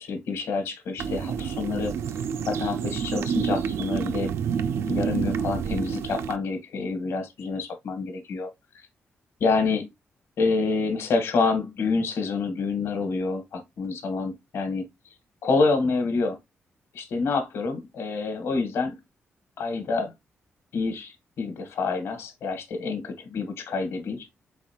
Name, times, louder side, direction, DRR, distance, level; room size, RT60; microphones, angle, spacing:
voice 1, 0.0-1.9 2.5-4.3 4.9-8.5 9.4-9.9 10.4-14.9 15.4-16.4 16.9-19.0 19.6-20.1 20.7-24.3, left 4 dB, 80° left, 1.2 m, -27 dB
sound 1, 1.0-6.4, right 7 dB, 85° right, 0.4 m, -28 dB
4.1 x 3.8 x 2.8 m
cardioid pair, 125°, 4 cm